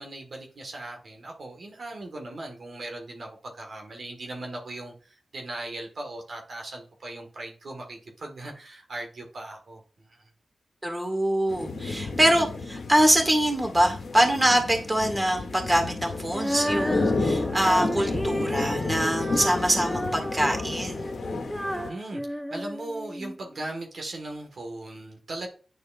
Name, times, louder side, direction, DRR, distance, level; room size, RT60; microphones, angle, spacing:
voice 1, 0.0-10.3 21.8-25.5, right 2 dB, 70° right, 1 dB, 1.6 m, -38 dB
voice 2, 10.8-21.1, right 1 dB, 20° right, 3 dB, 2.0 m, -24 dB
sound 1, 11.5-21.9, left 3 dB, 75° left, 1.3 m, -31 dB
Female singing, 16.3-23.4, equal, 5° right, 0.9 m, -32 dB
9.5 x 4.2 x 2.5 m, 0.38 s
cardioid pair, 45°, 0 cm